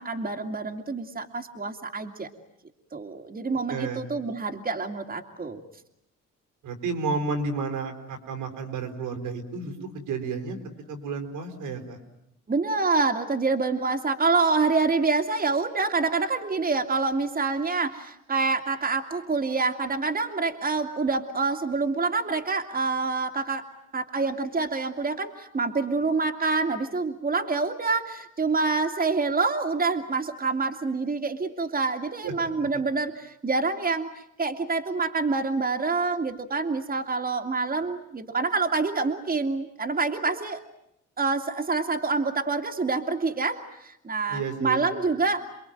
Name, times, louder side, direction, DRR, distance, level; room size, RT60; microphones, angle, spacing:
voice 1, 0.0-2.3 2.9-5.6 12.5-23.7 23.9-40.6 41.2-45.4, right 4 dB, 30° right, 3 dB, 2.5 m, -27 dB
voice 2, 3.7-4.0 6.6-10.6 10.9-12.0 32.2-32.7 44.3-44.8, right 4 dB, 90° right, 5 dB, 5.1 m, -31 dB
28.5 x 22.0 x 9.1 m, 0.78 s
cardioid pair, 90°, 30 cm